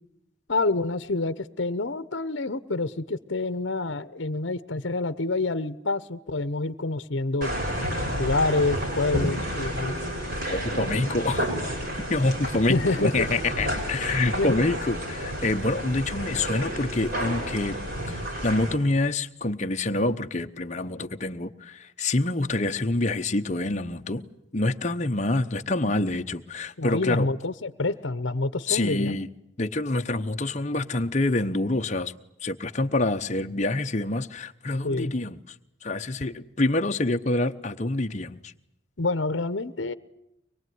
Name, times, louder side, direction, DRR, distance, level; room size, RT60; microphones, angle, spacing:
voice 1, 0.5-7.5 8.2-9.9 12.7-13.3 14.3-14.6 26.8-29.1 34.8-35.1 39.0-39.9, left 2 dB, 65° left, 0.9 m, -27 dB
sound 1, 7.4-18.7, equal, 50° right, 6.8 m, -30 dB
voice 2, 10.5-11.6 12.1-17.8 18.1-24.2 24.5-27.3 28.7-29.3 29.6-32.1 32.4-35.4 35.8-38.5, left 2 dB, 35° left, 0.9 m, -26 dB
24.0 x 21.5 x 9.4 m
head